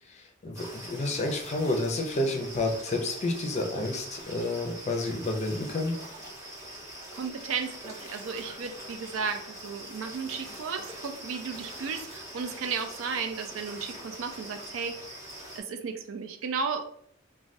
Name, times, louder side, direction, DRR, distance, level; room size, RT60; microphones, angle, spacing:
voice 1, 0.2-5.9, left 2 dB, 35° left, 2 dB, 0.5 m, -30 dB
sound 1, 0.5-15.6, right 1 dB, 15° right, 0.8 m, -43 dB
voice 2, 7.2-15.0 15.5-16.9, right 5 dB, 80° right, 7 dB, 0.4 m, -34 dB
3.2 x 2.2 x 2.6 m, 0.62 s
head